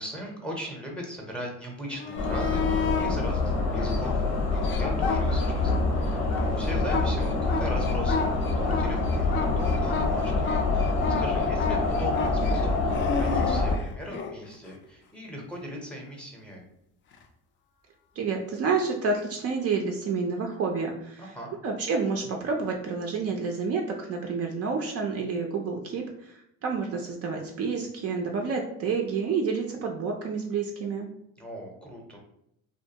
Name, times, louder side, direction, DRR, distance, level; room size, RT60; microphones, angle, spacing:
voice 1, 0.0-10.9 11.1-16.7 21.2-21.5 31.4-32.2, equal, 5° left, -1 dB, 0.6 m, -39 dB
sound 1, 1.9-3.1 3.7-5.8 6.1-14.3 17.1-17.2, left 6 dB, 35° left, 0.4 m, -32 dB
sound 2, 2.2-13.8, left 3 dB, 80° left, 0.8 m, -26 dB
voice 2, 18.2-21.2 21.6-31.1, right 4 dB, 45° right, 2 dB, 0.4 m, -29 dB
2.5 x 2.2 x 2.8 m, 0.77 s
supercardioid pair, 95°, 35 cm